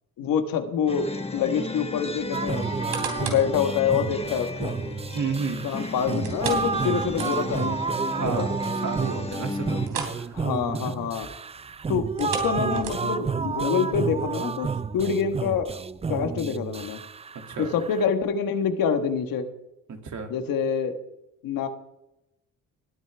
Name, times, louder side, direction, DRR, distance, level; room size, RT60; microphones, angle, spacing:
voice 1, 0.2-2.7 3.2-4.7 5.6-8.5 10.3-11.3 11.9-15.7 16.1-17.0 17.6-19.5 20.3-21.0 21.4-21.7, left 7 dB, 80° left, 7 dB, 1.4 m, -26 dB
sound 1, 0.9-9.9, left 3 dB, 15° left, 1.4 m, -34 dB
sound 2, 2.3-18.1, right 5 dB, 20° right, 0.4 m, -31 dB
sound 3, 2.6-3.5 4.0-4.1 6.2-7.7 8.0-8.1 8.6-8.7 9.8-10.2 10.5-10.7 12.0-13.3 13.9-14.0, right 6 dB, 85° right, 3.2 m, -34 dB
voice 2, 5.1-5.8 8.1-8.5 8.8-10.4 10.7-10.9 17.5-17.7 19.9-20.3, right 5 dB, 60° right, 4 dB, 2.4 m, -31 dB
20.5 x 9.3 x 3.4 m, 0.90 s
cardioid pair, 75°, 34 cm